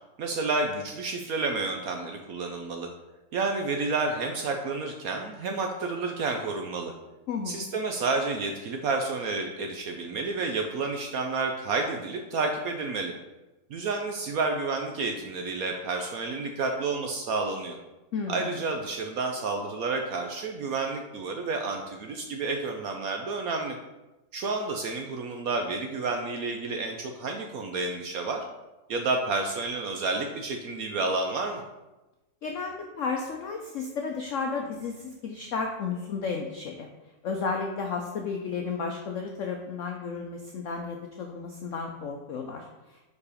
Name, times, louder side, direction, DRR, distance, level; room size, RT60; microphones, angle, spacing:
voice 1, 0.2-2.9 3.3-6.9 7.5-13.1 13.7-17.8 18.3-23.8 24.3-28.5 28.9-31.6, right 3 dB, 70° right, 3 dB, 0.9 m, -30 dB
voice 2, 7.3-7.6 18.1-18.5 32.4-36.9 37.2-42.6, left 5 dB, 75° left, 2 dB, 0.7 m, -33 dB
4.8 x 4.7 x 4.9 m, 1.1 s
omnidirectional pair, 2.0 m